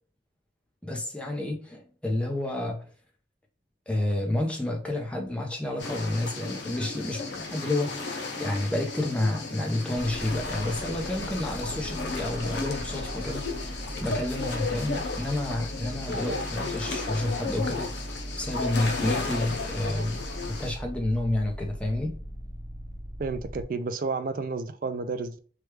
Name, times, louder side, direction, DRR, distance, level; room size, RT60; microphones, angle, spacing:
voice 1, 0.8-2.9 3.9-13.4 14.0-17.9 18.4-22.2, left 1 dB, 5° left, 0.6 m, -30 dB
sound 1, 5.8-20.7, left 3 dB, 80° left, 0.6 m, -34 dB
sound 2, 9.9-23.6, right 1 dB, 45° left, 0.7 m, -39 dB
voice 2, 23.2-25.4, right 4 dB, 50° right, 0.3 m, -31 dB
3.2 x 2.3 x 3.1 m
head